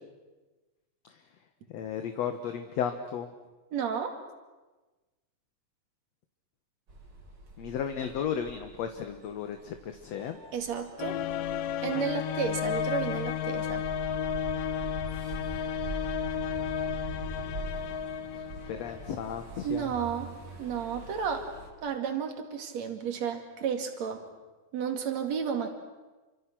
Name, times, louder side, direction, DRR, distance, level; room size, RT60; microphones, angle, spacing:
voice 1, 1.7-3.3 7.6-10.4 18.3-19.9, left 8 dB, 65° left, 7 dB, 2.1 m, -34 dB
voice 2, 3.7-4.2 10.5-11.2 11.8-13.8 19.6-20.3 20.6-21.5 21.8-24.3 24.7-25.7, right 7 dB, 55° right, 5 dB, 3.5 m, -32 dB
sound 1, 6.9-21.7, right 1 dB, 35° right, 3.7 m, -43 dB
sound 2, 11.0-19.4, left 8 dB, 85° left, 2.6 m, -33 dB
29.0 x 25.5 x 6.1 m, 1.2 s
omnidirectional pair, 3.7 m